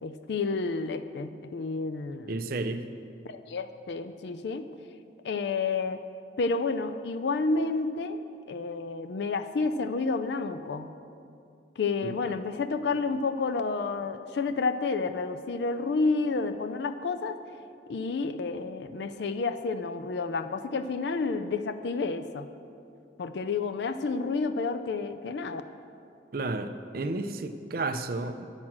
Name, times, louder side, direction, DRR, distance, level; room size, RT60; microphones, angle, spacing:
voice 1, 0.0-2.4 3.3-4.7 5.2-6.0 6.4-8.2 8.5-10.9 11.8-17.4 17.9-22.5 23.2-25.6, left 4 dB, 65° left, 10 dB, 0.4 m, -30 dB
voice 2, 2.3-2.9 12.0-12.3 26.3-28.5, right 2 dB, 50° right, 8 dB, 0.5 m, -32 dB
8.8 x 6.2 x 7.2 m, 2.5 s
head